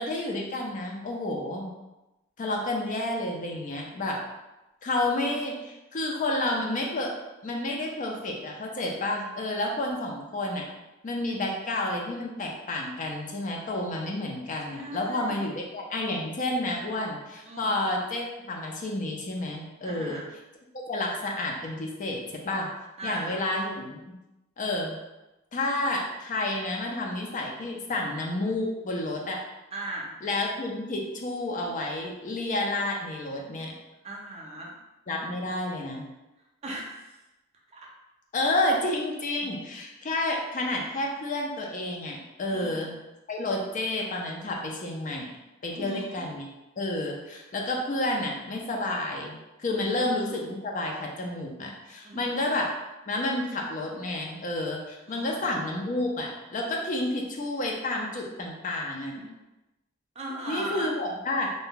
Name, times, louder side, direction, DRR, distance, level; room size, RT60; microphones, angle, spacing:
voice 1, 0.0-1.7 2.4-4.2 4.8-7.1 7.4-10.6 11.0-20.2 20.9-22.7 23.0-24.0 24.6-25.0 25.5-29.4 30.2-33.7 35.1-36.0 38.3-42.9 43.3-45.3 45.6-46.5 46.8-52.7 53.1-59.2 60.5-61.5, left 2 dB, 40° left, 0 dB, 0.4 m, -30 dB
voice 2, 14.7-15.5 17.4-17.8 19.8-20.3 23.0-23.4 29.7-30.1 34.0-34.7 36.6-37.2 37.7-37.9 39.4-39.5 42.5-42.8 45.7-46.2 49.8-50.0 52.0-52.4 55.1-55.4 59.1-59.2 60.2-60.9, right 1 dB, 30° right, -2 dB, 0.5 m, -38 dB
2.6 x 2.1 x 3.6 m, 0.99 s
head